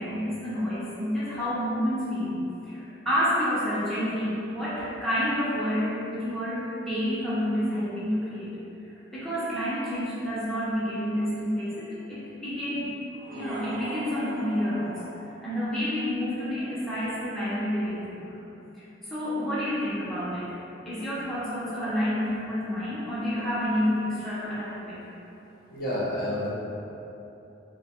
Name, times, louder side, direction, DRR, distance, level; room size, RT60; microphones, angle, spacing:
voice 1, 0.0-8.5 8.8-12.9 13.3-18.3 19.1-20.6 20.8-25.0, equal, ahead, -11 dB, 0.6 m, -29 dB
sound 1, 13.1-16.1, right 1 dB, 45° right, 0.7 m, -41 dB
voice 2, 25.1-26.5, left 1 dB, 50° left, -7 dB, 0.7 m, -31 dB
3.3 x 2.2 x 4.2 m, 2.9 s
head